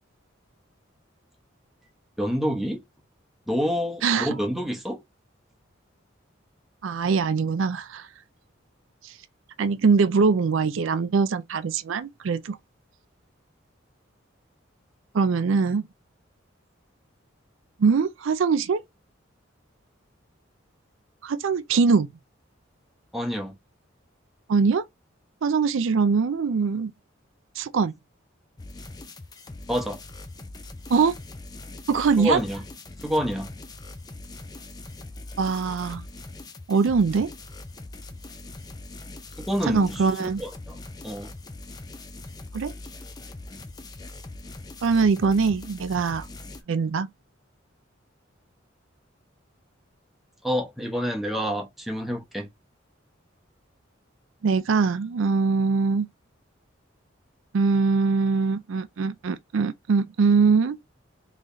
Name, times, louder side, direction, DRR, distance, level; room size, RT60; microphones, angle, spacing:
voice 1, 2.2-2.8 3.5-5.0 23.1-23.6 29.7-30.0 32.2-32.6 33.0-33.5 39.4-41.3 50.4-52.5, equal, ahead, 0.8 m, -28 dB
voice 2, 4.0-4.3 6.8-8.1 9.0-9.1 9.6-12.6 15.1-15.8 17.8-18.8 21.2-22.1 24.5-24.9 25.4-26.9 27.6-27.9 30.9-31.2 31.9-32.4 35.4-36.0 36.7-37.3 39.7-40.4 42.5-42.7 44.8-46.3 46.7-47.1 54.4-56.1 57.5-60.8, right 5 dB, 80° right, 0.4 m, -22 dB
sound 1, 28.6-46.6, left 2 dB, 20° left, 0.4 m, -41 dB
3.8 x 3.0 x 2.6 m
head